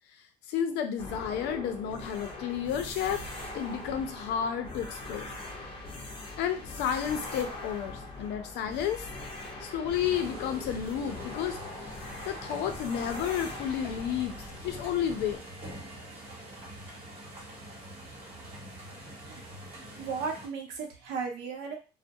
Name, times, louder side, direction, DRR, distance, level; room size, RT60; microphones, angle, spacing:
voice 1, 0.5-3.2 3.5-5.3 6.4-9.0 9.6-11.6 11.8-11.9 12.3-14.3 14.6-15.4, left 8 dB, 85° left, 7 dB, 0.5 m, -31 dB
sound 1, 1.0-15.4, left 2 dB, 30° left, 0.7 m, -41 dB
sound 2, 10.0-20.5, right 1 dB, 35° right, 1.2 m, -45 dB
voice 2, 20.0-21.7, right 5 dB, 85° right, 2 dB, 0.7 m, -35 dB
2.3 x 2.1 x 2.6 m, 0.32 s
cardioid pair, 110°, 17 cm